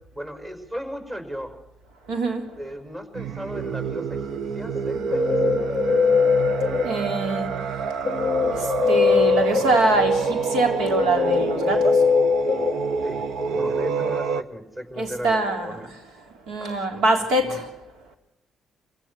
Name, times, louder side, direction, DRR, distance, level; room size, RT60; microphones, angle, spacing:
voice 1, 0.1-1.6 2.6-5.2 13.0-15.9 16.6-17.0 17.4-17.7, equal, 20° right, 5.4 m, -35 dB
voice 2, 2.1-2.4 6.8-7.6 8.6-12.0 15.0-15.9 16.5-17.7, right 2 dB, 90° right, 3.5 m, -24 dB
sound 1, 3.1-14.4, right 5 dB, 70° right, 0.9 m, -27 dB
Guitar, 4.8-7.3 8.0-13.5, left 6 dB, 45° left, 0.6 m, -23 dB
26.0 x 16.5 x 6.3 m
cardioid pair, 90°, 0 cm